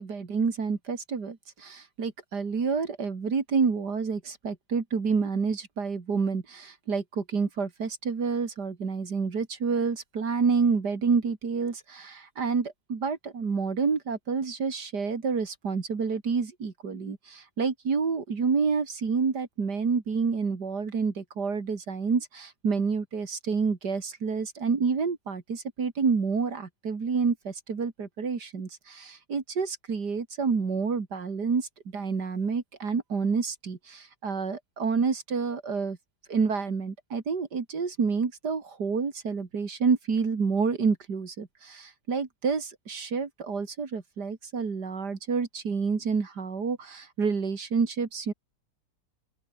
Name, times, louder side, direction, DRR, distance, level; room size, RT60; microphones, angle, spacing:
voice 1, 0.0-36.0 36.3-48.3, right 5 dB, 80° right, 3.1 m, -28 dB
open air
omnidirectional pair, 1.7 m